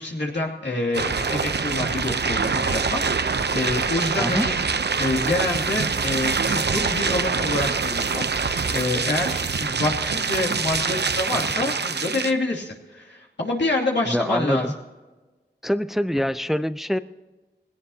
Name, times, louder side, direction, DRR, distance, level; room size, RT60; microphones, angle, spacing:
voice 1, 0.0-4.5 5.0-14.7, left 2 dB, 90° left, -2 dB, 2.8 m, -27 dB
sound 1, 0.9-12.3, right 5 dB, 75° right, 0.7 m, -25 dB
voice 2, 14.1-14.7 15.6-17.0, equal, ahead, 13 dB, 0.5 m, -24 dB
20.0 x 17.0 x 2.9 m, 1.2 s
wide cardioid pair, 45°, 18 cm